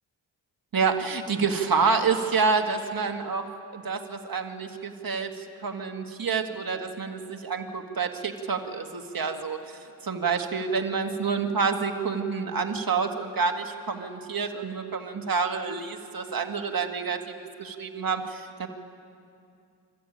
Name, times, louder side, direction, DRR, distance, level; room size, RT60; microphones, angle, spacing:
voice 1, 0.7-18.7, right 5 dB, 50° right, 5 dB, 1.9 m, -28 dB
26.0 x 14.0 x 8.9 m, 2.5 s
cardioid pair, 80°, 45 cm